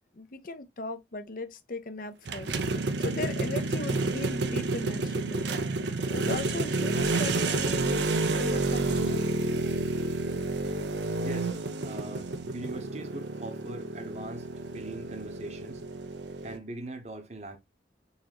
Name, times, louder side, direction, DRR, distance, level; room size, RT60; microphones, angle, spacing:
voice 1, 0.1-2.5 3.0-5.5 6.1-9.2, left 3 dB, 50° left, 0.6 m, -38 dB
sound 1, 2.3-16.6, right 3 dB, 70° right, 0.6 m, -30 dB
voice 2, 11.2-14.4 14.7-15.8 16.4-17.6, right 2 dB, 35° right, 0.9 m, -41 dB
4.0 x 3.8 x 2.9 m
head